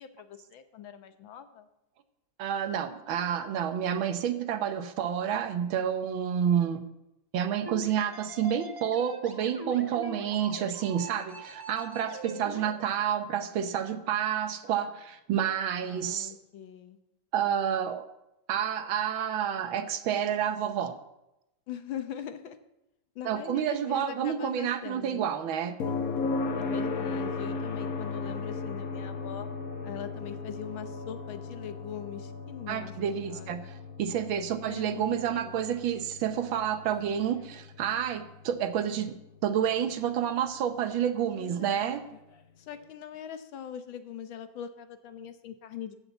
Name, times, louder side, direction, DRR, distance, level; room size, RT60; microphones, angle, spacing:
voice 1, 0.0-1.7 9.8-10.3 12.2-12.6 15.8-17.0 21.7-22.6 23.1-25.3 26.5-29.5 29.8-32.9 33.2-33.6 34.6-35.7 41.4-42.2 42.6-46.0, left 9 dB, 80° left, 9 dB, 1.7 m, -42 dB
voice 2, 2.4-6.8 7.3-16.3 17.3-18.1 18.5-21.0 23.2-25.7 32.7-39.1 39.4-42.0, right 9 dB, 85° right, 9 dB, 1.7 m, -29 dB
sound 1, 7.7-12.7, right 2 dB, 15° right, 0.8 m, -42 dB
sound 2, 25.8-39.7 41.9-42.0, left 4 dB, 55° left, 1.2 m, -36 dB
14.5 x 5.8 x 8.0 m, 0.90 s
omnidirectional pair, 2.1 m